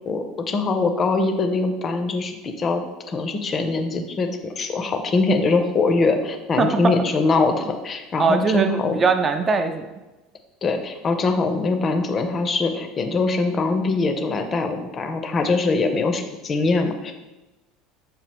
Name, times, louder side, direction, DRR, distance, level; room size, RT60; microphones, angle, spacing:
voice 1, 0.1-9.1 10.6-17.1, left 3 dB, 35° left, 6 dB, 0.5 m, -23 dB
voice 2, 6.6-6.9 8.2-9.9, right 4 dB, 30° right, 7 dB, 0.4 m, -20 dB
5.9 x 2.3 x 3.4 m, 1.1 s
hypercardioid pair, 70°, 0 cm